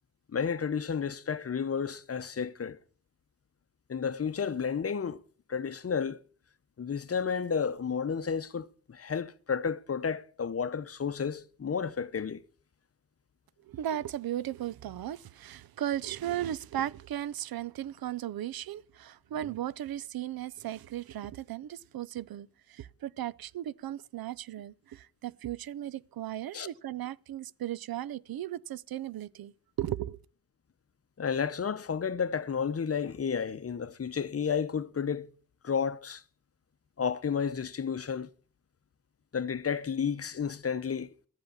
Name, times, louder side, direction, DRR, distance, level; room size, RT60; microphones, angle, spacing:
voice 1, 0.3-2.8 3.9-5.2 5.5-6.2 6.8-12.4 26.5-26.7 31.2-35.3 35.6-36.2 37.0-38.3 39.3-41.1, left 6 dB, 40° left, 0.7 m, -32 dB
voice 2, 13.7-29.5 29.8-30.2, right 12 dB, 90° right, 0.5 m, -36 dB
13.5 x 8.0 x 7.1 m
wide cardioid pair, 95°, 35 cm